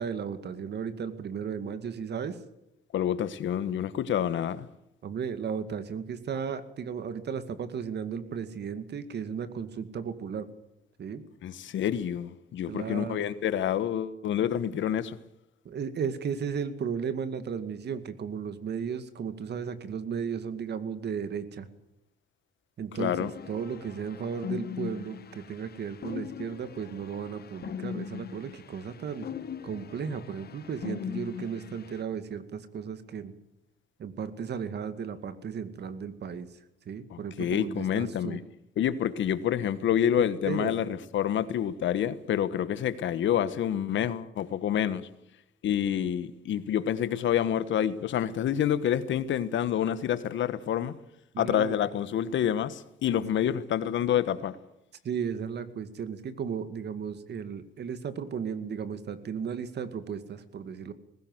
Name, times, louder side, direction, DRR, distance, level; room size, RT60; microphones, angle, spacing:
voice 1, 0.0-2.4 5.0-10.5 11.0-11.2 12.7-13.3 15.6-21.7 22.8-29.3 29.6-33.3 34.0-36.5 36.9-38.4 40.5-40.8 51.3-51.8 55.0-60.9, right 7 dB, 55° right, 2.2 m, -35 dB
voice 2, 2.9-4.7 11.4-15.2 23.0-23.3 37.1-38.4 38.8-45.1 45.6-51.0 51.4-54.6, left 10 dB, 70° left, 1.4 m, -28 dB
sound 1, 23.0-32.0, left 8 dB, 55° left, 1.2 m, -40 dB
19.5 x 17.0 x 8.0 m
cardioid pair, 90°, 20 cm